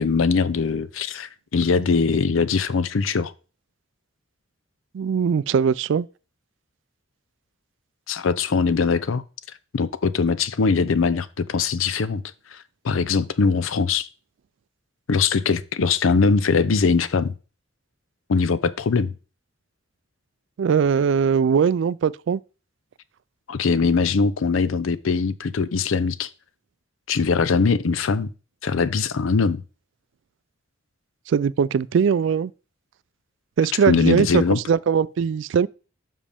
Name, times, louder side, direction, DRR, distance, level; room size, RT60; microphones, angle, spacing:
voice 1, 0.0-3.3 8.1-9.2 9.7-12.2 12.5-14.1 15.1-17.3 18.3-19.1 23.5-26.3 27.1-28.3 28.6-29.6 33.8-34.6, left 5 dB, 90° left, 0.5 m, -21 dB
voice 2, 4.9-6.1 20.6-22.4 31.3-32.5 33.6-35.7, right 6 dB, 70° right, 0.3 m, -20 dB
7.4 x 5.5 x 3.4 m
head